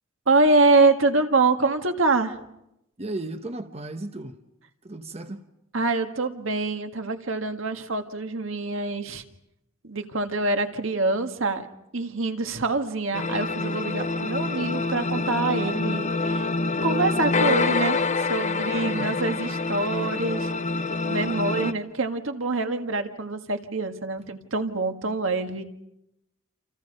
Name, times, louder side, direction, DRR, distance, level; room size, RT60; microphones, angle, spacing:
voice 1, 0.3-2.4 5.7-9.2 9.8-11.7 11.9-16.5 16.8-18.0 18.3-20.5 21.0-25.6, right 3 dB, 70° right, 1.8 m, -25 dB
voice 2, 3.0-4.4 4.8-5.4 18.8-19.2, right 2 dB, 30° right, 1.0 m, -35 dB
sound 1, 13.1-21.7, left 3 dB, 35° left, 0.9 m, -26 dB
29.0 x 28.0 x 5.4 m
head